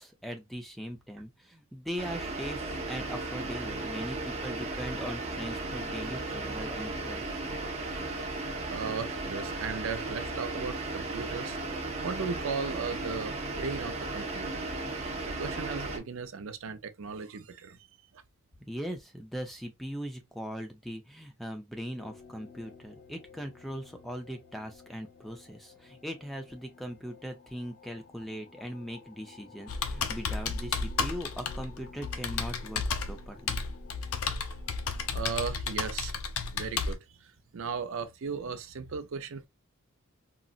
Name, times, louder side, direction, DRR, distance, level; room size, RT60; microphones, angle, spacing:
voice 1, 0.0-7.2 18.7-33.6, equal, ahead, 0.5 m, -40 dB
sound 1, 2.0-16.0, right 2 dB, 30° right, 0.7 m, -35 dB
voice 2, 8.7-11.6 12.0-14.7 15.4-17.8 34.5-34.6 35.1-36.1 36.5-39.5, right 5 dB, 65° right, 0.5 m, -36 dB
sound 2, 22.0-35.1, left 5 dB, 50° left, 0.9 m, -53 dB
Computer keyboard, 29.7-36.9, left 5 dB, 80° left, 0.5 m, -33 dB
3.8 x 2.0 x 2.4 m
head